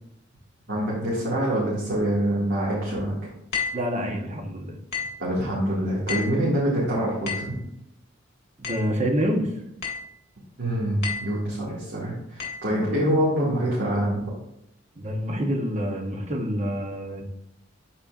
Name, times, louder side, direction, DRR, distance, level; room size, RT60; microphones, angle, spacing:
voice 1, 0.7-3.1 5.2-7.5 10.6-14.2, right 1 dB, 60° right, -8 dB, 2.1 m, -25 dB
sound 1, 3.5-3.9 4.9-5.3 6.1-6.4 7.3-7.6 8.6-9.0 9.8-10.1 11.0-11.4 12.4-12.6, left 6 dB, 55° left, 2.0 m, -31 dB
voice 2, 3.7-4.8 8.6-9.5 12.8-12.9 15.0-17.2, equal, 35° right, 3 dB, 1.0 m, -27 dB
12.5 x 4.3 x 2.5 m, 0.79 s
head